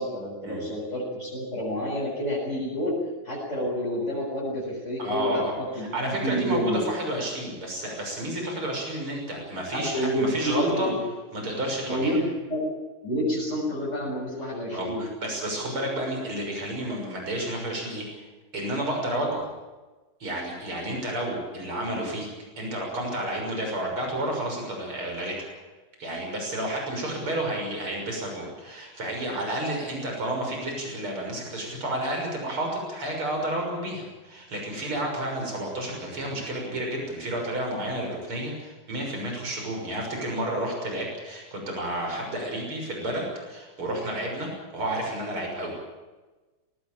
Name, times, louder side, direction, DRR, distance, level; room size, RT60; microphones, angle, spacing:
voice 1, 0.0-3.0 3.2-6.8 9.7-11.0 11.9-12.6 13.0-15.0, equal, 30° left, -6 dB, 7.1 m, -29 dB
voice 2, 5.0-10.9 11.3-12.1 14.7-18.3 18.5-19.5 20.2-22.3 22.6-25.5 26.0-45.7, right 1 dB, 85° right, 1 dB, 7.3 m, -31 dB
19.5 x 19.5 x 9.1 m, 1.2 s
omnidirectional pair, 2.3 m